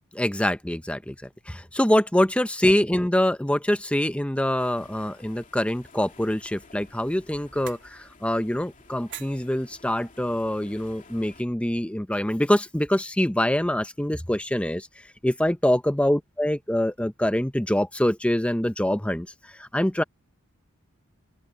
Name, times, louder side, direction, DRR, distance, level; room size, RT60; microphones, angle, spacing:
voice 1, 0.1-1.2 1.5-14.9 15.2-19.3 19.6-20.0, left 1 dB, 5° left, 0.8 m, -24 dB
sound 1, 4.6-11.4, left 3 dB, 40° left, 2.9 m, -53 dB
sound 2, 5.7-11.1, right 9 dB, 55° right, 3.5 m, -49 dB
open air
head